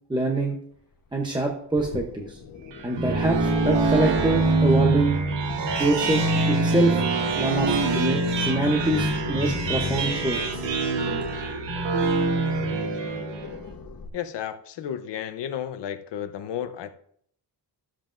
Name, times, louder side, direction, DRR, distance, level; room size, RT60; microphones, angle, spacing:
voice 1, 0.1-0.6 1.1-2.4 2.8-5.2 5.8-7.0 7.4-10.6, right 2 dB, 10° right, 1 dB, 0.7 m, -25 dB
sound 1, 1.8-14.1, left 4 dB, 50° left, 1.1 m, -36 dB
sound 2, 2.7-13.6, right 3 dB, 75° right, 1.2 m, -24 dB
voice 2, 14.1-16.9, left 9 dB, 70° left, 9 dB, 0.8 m, -32 dB
13.5 x 7.4 x 2.5 m, 0.65 s
wide cardioid pair, 170°, 43 cm